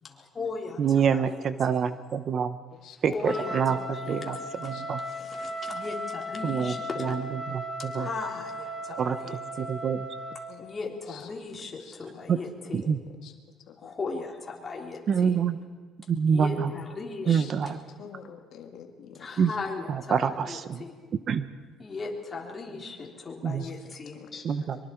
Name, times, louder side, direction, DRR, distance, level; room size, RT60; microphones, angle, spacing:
voice 1, 0.0-1.8 3.1-7.2 7.9-9.7 10.6-12.9 13.8-15.4 16.3-17.5 19.2-21.0 21.8-24.5, left 4 dB, 30° left, -1 dB, 3.6 m, -38 dB
voice 2, 0.8-2.6 3.0-5.0 6.4-6.7 7.0-7.2 7.5-8.1 9.0-9.2 9.6-10.1 12.3-12.4 12.7-13.0 15.1-15.6 16.1-16.7 17.3-17.8 19.4-19.5 19.9-20.8 21.3-21.5 23.4-23.6 24.4-24.8, right 7 dB, 50° right, 12 dB, 1.0 m, -26 dB
Trumpet, 3.2-10.5, equal, 5° left, 2.8 m, -36 dB
voice 3, 3.4-4.4 4.7-4.8 5.2-5.5 10.5-10.6 11.1-11.2 11.8-12.9 13.2-13.3 13.7-13.9 17.2-19.4 23.0-23.2 23.6-23.7 24.1-24.3, left 8 dB, 70° left, 5 dB, 2.0 m, -48 dB
24.0 x 23.5 x 4.6 m, 1.5 s
cardioid pair, 105°, 0 cm